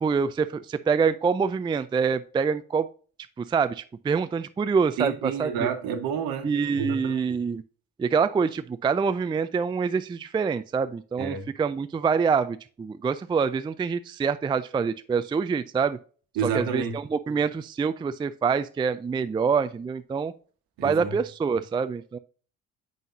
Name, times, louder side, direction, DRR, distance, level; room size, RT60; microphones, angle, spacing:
voice 1, 0.0-2.9 3.4-5.7 6.4-7.6 8.0-16.0 16.4-20.3 20.8-22.2, right 5 dB, 15° right, 0.4 m, -26 dB
voice 2, 5.0-7.2 11.2-11.5 16.4-17.0 20.8-21.2, right 6 dB, 65° right, 1.3 m, -30 dB
7.7 x 5.4 x 2.6 m
hypercardioid pair, 55°, 37 cm